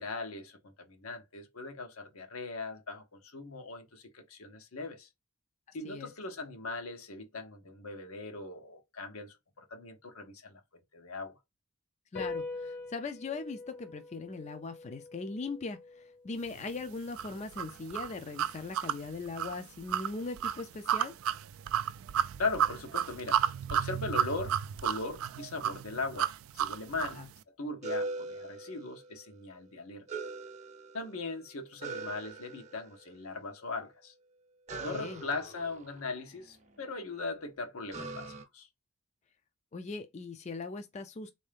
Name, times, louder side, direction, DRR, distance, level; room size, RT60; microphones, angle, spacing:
voice 1, 0.0-5.1 5.7-10.6 10.9-11.3 22.4-23.4 23.7-26.3 26.6-27.2 27.6-30.0 30.9-34.1 34.8-38.7, left 3 dB, 85° left, 0.9 m, -39 dB
sound 1, 12.1-18.9, left 3 dB, 50° left, 0.9 m, -45 dB
voice 2, 12.1-21.1 27.2-27.3 34.9-35.3 39.7-41.3, left 3 dB, 30° left, 0.4 m, -40 dB
sound 2, 17.2-27.2, right 9 dB, 70° right, 0.3 m, -32 dB
sound 3, 27.8-29.3 30.1-31.3 31.8-33.0 34.7-36.8 37.9-38.4, right 3 dB, 30° right, 0.6 m, -41 dB
3.7 x 2.7 x 3.3 m
head